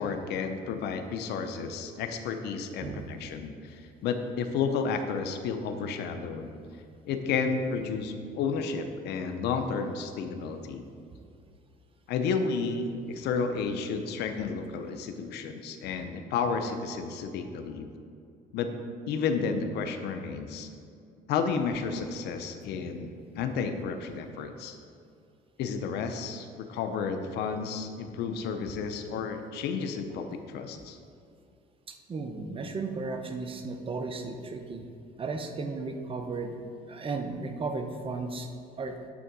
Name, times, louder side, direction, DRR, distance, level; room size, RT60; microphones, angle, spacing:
voice 1, 0.0-6.5 7.0-10.8 12.1-17.9 18.5-18.7 19.1-20.7 21.3-24.8 25.6-31.0, left 5 dB, 80° left, 7 dB, 0.7 m, -32 dB
voice 2, 2.8-3.2 31.9-34.9 35.2-36.6 36.9-38.5 38.8-39.0, right 3 dB, 30° right, 6 dB, 0.8 m, -35 dB
9.8 x 3.7 x 6.0 m, 2.4 s
cardioid pair, 110°, 17 cm